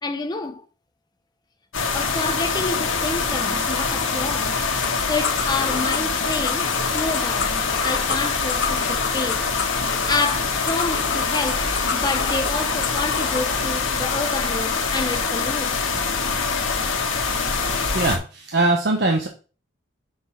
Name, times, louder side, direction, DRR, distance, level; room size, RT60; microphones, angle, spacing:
voice 1, 0.0-0.7 1.9-4.6 5.1-9.5 10.1-15.8, left 3 dB, 20° left, 0.7 m, -28 dB
sound 1, 1.7-18.2, left 4 dB, 90° left, 1.5 m, -24 dB
sound 2, 4.8-13.5, left 5 dB, 60° left, 1.0 m, -31 dB
voice 2, 17.9-19.3, right 2 dB, 55° right, 1.0 m, -21 dB
6.0 x 4.4 x 5.8 m
head